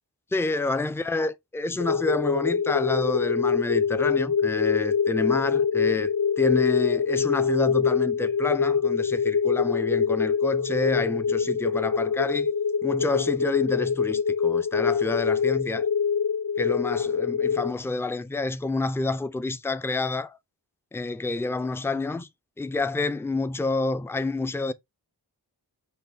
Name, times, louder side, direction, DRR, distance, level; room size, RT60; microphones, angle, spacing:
voice 1, 0.3-6.1 6.4-12.5 12.8-15.9 16.6-20.4 20.9-22.3 22.6-24.7, left 3 dB, 5° left, 0.3 m, -28 dB
sound 1, 1.8-17.7, left 6 dB, 60° left, 0.6 m, -24 dB
5.6 x 2.1 x 4.0 m
wide cardioid pair, 65°, 42 cm